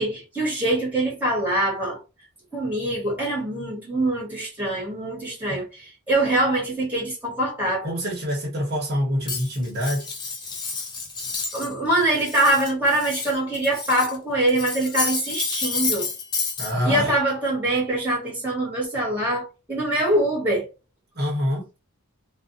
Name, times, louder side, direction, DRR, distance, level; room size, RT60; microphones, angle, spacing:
voice 1, 0.0-2.0 2.5-5.6 6.1-7.9 11.5-16.1 16.8-20.7, right 1 dB, 10° right, 1.3 m, -24 dB
voice 2, 7.8-10.1 16.6-17.2 21.1-21.7, equal, 45° right, 1.0 m, -26 dB
Cutlery silverware, 9.3-11.7 12.0-14.2 14.5-16.7, left 4 dB, 20° left, 0.4 m, -30 dB
2.4 x 2.3 x 2.6 m
head